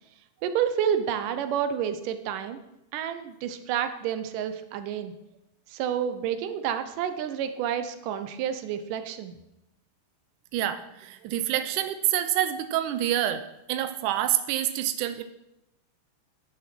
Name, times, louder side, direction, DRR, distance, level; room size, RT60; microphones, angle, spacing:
voice 1, 0.4-2.6 2.9-5.1 5.7-9.3, right 9 dB, 75° right, 10 dB, 2.1 m, -29 dB
voice 2, 10.5-13.4 13.7-15.2, right 12 dB, 90° right, 10 dB, 1.8 m, -27 dB
10.0 x 10.0 x 6.1 m, 0.88 s
omnidirectional pair, 4.6 m